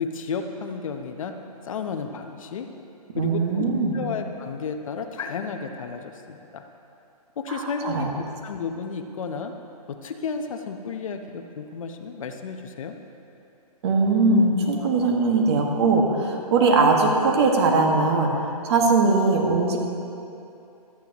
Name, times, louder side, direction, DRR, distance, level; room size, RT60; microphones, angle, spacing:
voice 1, 0.0-1.4 1.6-2.7 3.2-3.6 3.9-6.6 7.4-9.5 9.9-13.0, left 5 dB, 55° left, 5 dB, 1.0 m, -32 dB
voice 2, 3.1-4.0 7.5-8.1 13.8-19.8, right 3 dB, 40° right, 1 dB, 1.8 m, -21 dB
25.5 x 9.1 x 3.1 m, 2.8 s
hypercardioid pair, 150°, 20 cm